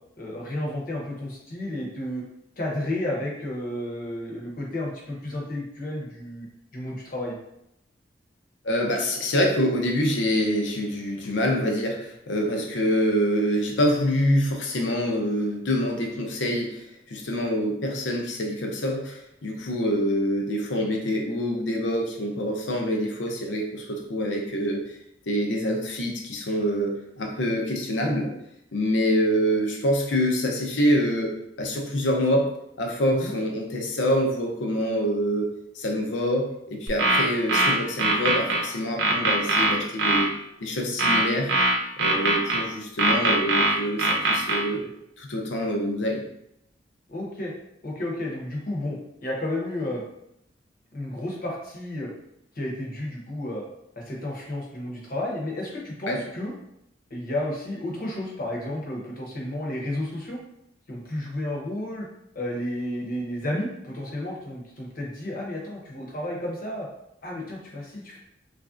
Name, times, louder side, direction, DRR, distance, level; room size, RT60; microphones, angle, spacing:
voice 1, 0.2-2.2 2.6-6.5 6.7-7.4 33.2-33.3 47.1-47.5 47.8-50.0 50.9-52.1 52.5-53.6 54.0-56.5 57.1-60.4 60.9-62.1 62.3-66.9 67.2-68.2, left 1 dB, 50° left, -2 dB, 0.8 m, -32 dB
voice 2, 8.6-24.8 25.3-28.3 28.7-32.5 32.8-40.3 40.6-41.5 42.0-44.9 45.2-46.2 56.1-56.2, equal, 85° left, 1 dB, 0.6 m, -26 dB
sound 1, 36.9-38.6 39.0-40.3 41.0-42.6 43.0-44.6, right 2 dB, 70° right, 0.6 m, -21 dB
3.1 x 2.5 x 2.4 m, 0.79 s
head